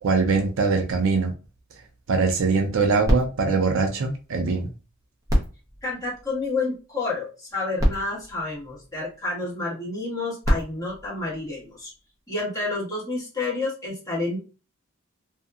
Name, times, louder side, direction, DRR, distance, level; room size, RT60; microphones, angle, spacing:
voice 1, 0.0-1.3 2.1-4.7, right 4 dB, 65° right, 0.5 m, -22 dB
sound 1, 3.0-4.7 5.2-6.8 7.5-7.6 7.8-9.4 10.2-12.0 12.7-12.8, equal, 15° right, 0.7 m, -28 dB
voice 2, 5.8-11.9 12.3-14.4, left 3 dB, 15° left, 1.5 m, -29 dB
2.7 x 2.5 x 2.3 m
head